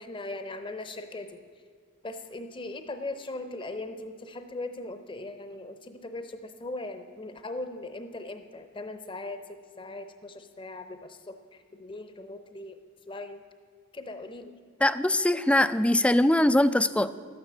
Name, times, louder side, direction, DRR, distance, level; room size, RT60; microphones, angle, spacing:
voice 1, 0.0-1.4 2.0-12.8 13.1-13.4 13.9-14.5, left 2 dB, 25° left, 8 dB, 0.7 m, -39 dB
voice 2, 14.8-17.1, left 1 dB, 5° left, 14 dB, 0.3 m, -22 dB
12.5 x 9.6 x 7.7 m, 2.1 s
head